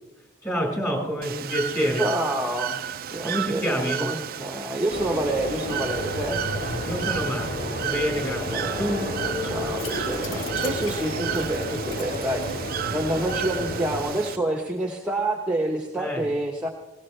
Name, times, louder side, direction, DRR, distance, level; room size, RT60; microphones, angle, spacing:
voice 1, 0.4-2.0 3.2-4.1 6.8-9.0 9.4-9.8 16.0-16.3, equal, 15° left, -1 dB, 5.5 m, -28 dB
Bird / Water, 1.2-14.4, right 9 dB, 50° right, 0.5 m, -33 dB
voice 2, 2.0-2.8 3.1-6.4 8.5-16.7, right 1 dB, 5° right, 1 dB, 1.1 m, -28 dB
sound 1, 4.9-14.0, left 1 dB, 55° left, 3.4 m, -31 dB
sound 2, 9.7-12.8 13.2-13.3 13.6-13.7, left 3 dB, 70° left, 1.5 m, -38 dB
21.0 x 19.0 x 3.3 m, 1.0 s
head